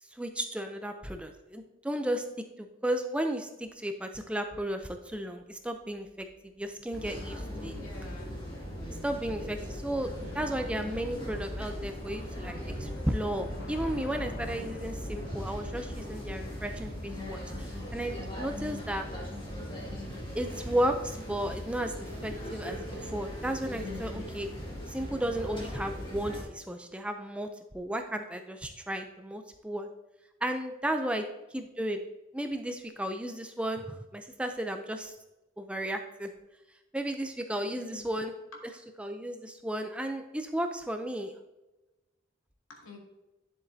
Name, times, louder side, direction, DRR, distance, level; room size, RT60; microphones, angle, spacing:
voice 1, 0.1-2.3 2.6-6.3 6.6-7.8 8.9-19.1 20.3-24.5 24.9-29.9 30.4-32.0 32.3-35.1 35.6-36.3 36.9-38.3 38.6-38.7 39.0-41.3, right 1 dB, 5° right, 6 dB, 0.4 m, -34 dB
Train / Subway metro underground, 5.7-18.7, left 1 dB, 50° left, 0.9 m, -46 dB
sound 1, 6.9-26.4, equal, 25° left, 2.0 m, -39 dB
voice 2, 7.5-8.3 31.1-31.3 37.6-38.1 42.7-43.0, left 3 dB, 90° left, -1 dB, 2.3 m, -48 dB
10.5 x 7.3 x 2.7 m, 1.0 s
head